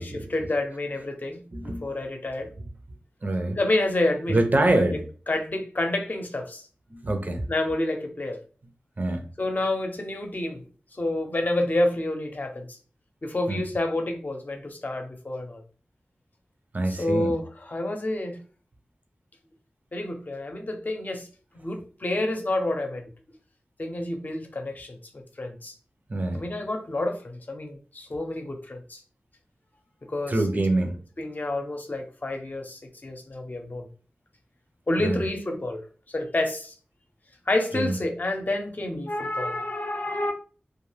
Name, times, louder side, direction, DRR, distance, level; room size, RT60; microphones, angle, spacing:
voice 1, 0.0-2.5 3.6-4.4 4.9-5.0 5.3-6.7 7.5-8.4 9.4-10.6 10.9-12.8 13.2-15.6 16.9-18.4 19.9-21.3 21.5-23.1 23.8-25.7 26.3-29.0 30.1-30.9 31.2-33.9 34.9-36.7 37.5-40.3, left 1 dB, 45° left, 0.7 m, -29 dB
voice 2, 1.5-1.9 3.2-3.6 4.3-5.0 6.9-7.4 9.0-9.2 13.5-13.6 16.7-17.3 26.1-26.4 30.3-31.0 35.0-35.2 37.7-37.9, right 2 dB, 45° right, 0.6 m, -25 dB
2.4 x 2.3 x 3.2 m
cardioid pair, 40°, 4 cm